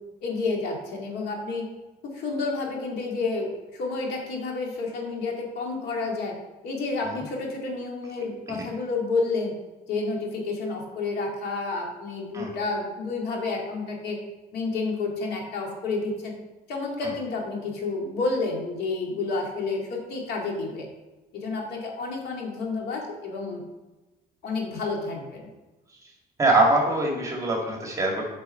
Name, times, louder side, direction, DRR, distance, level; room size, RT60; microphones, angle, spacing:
voice 1, 0.2-1.7 2.0-6.3 6.6-9.5 9.9-14.2 14.5-16.3 16.7-20.9 21.3-23.6 24.4-25.5, left 3 dB, 75° left, 0 dB, 2.5 m, -30 dB
voice 2, 26.4-28.3, right 2 dB, 20° right, -1 dB, 2.1 m, -23 dB
9.0 x 5.4 x 5.6 m, 1.1 s
cardioid pair, 110°, 17 cm